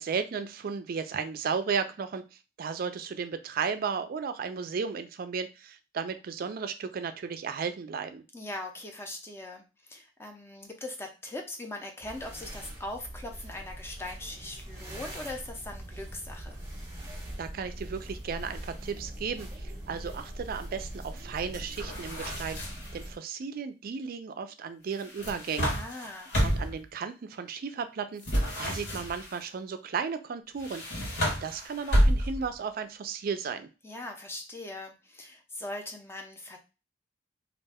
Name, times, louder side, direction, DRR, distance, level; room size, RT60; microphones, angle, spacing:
voice 1, 0.0-2.2 2.6-8.2 17.4-22.6 22.9-25.7 26.4-30.8 31.2-33.7, right 6 dB, 55° right, 10 dB, 0.4 m, -34 dB
voice 2, 8.3-16.6 25.7-26.4 33.8-36.6, left 2 dB, 15° left, 3 dB, 0.5 m, -40 dB
sound 1, 12.0-23.2, right 1 dB, 20° right, 0.8 m, -42 dB
sound 2, 21.7-23.0 25.0-26.8 28.2-29.4 30.6-32.5, equal, 70° left, 1.5 m, -29 dB
2.4 x 2.1 x 3.4 m, 0.30 s
head